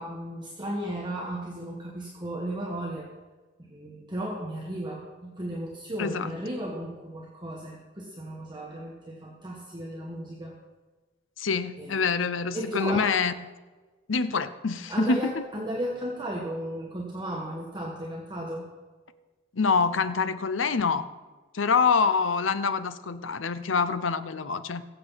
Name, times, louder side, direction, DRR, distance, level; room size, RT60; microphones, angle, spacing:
voice 1, 0.0-3.1 3.6-10.5 11.8-12.1 12.5-13.1 14.9-18.7, right 1 dB, 25° right, -2 dB, 1.5 m, -34 dB
voice 2, 6.0-6.3 11.4-13.3 14.1-15.4 19.5-21.1 21.5-24.8, left 5 dB, 85° left, 12 dB, 0.7 m, -26 dB
21.0 x 7.8 x 4.1 m, 1.3 s
head